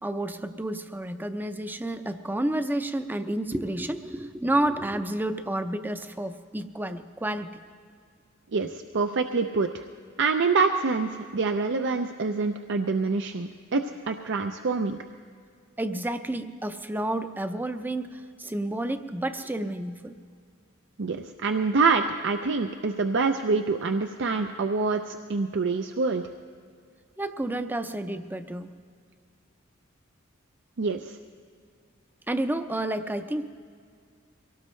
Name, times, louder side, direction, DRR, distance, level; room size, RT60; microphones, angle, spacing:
voice 1, 0.0-7.6 15.8-20.1 27.2-28.7 32.3-33.5, right 1 dB, 10° right, 9 dB, 0.6 m, -30 dB
voice 2, 8.5-9.8 10.2-15.0 21.0-26.2 30.8-31.2, right 4 dB, 60° right, 6 dB, 0.6 m, -26 dB
23.5 x 17.5 x 3.2 m, 2.2 s
head